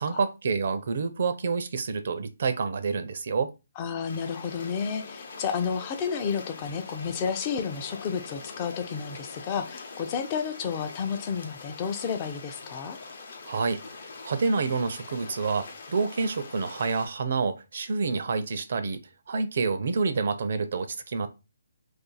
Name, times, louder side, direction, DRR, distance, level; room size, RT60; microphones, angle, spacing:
voice 1, 0.0-3.5 13.4-19.0 19.3-21.3, right 4 dB, 55° right, 0.5 m, -28 dB
voice 2, 3.8-13.0, left 6 dB, 25° left, 0.5 m, -31 dB
sound 1, 4.1-17.1, left 4 dB, 50° left, 0.8 m, -44 dB
sound 2, 5.0-10.2, left 4 dB, 85° left, 0.8 m, -49 dB
2.6 x 2.4 x 3.8 m
hypercardioid pair, 160°, 0 cm